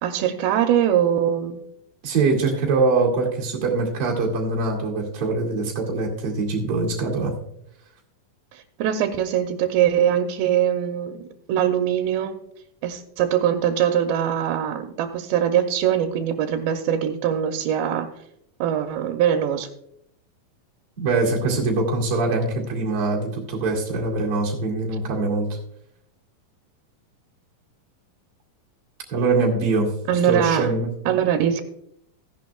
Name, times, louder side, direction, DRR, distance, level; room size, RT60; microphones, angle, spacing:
voice 1, 0.0-1.6 8.5-12.4 12.8-18.1 18.6-19.7 30.1-30.7 31.1-31.6, right 9 dB, 90° right, 5 dB, 2.5 m, -22 dB
voice 2, 2.0-7.3 21.0-25.6 29.1-29.9 30.2-30.9, right 3 dB, 45° right, -2 dB, 2.8 m, -23 dB
15.5 x 10.5 x 2.3 m, 0.74 s
omnidirectional pair, 4.2 m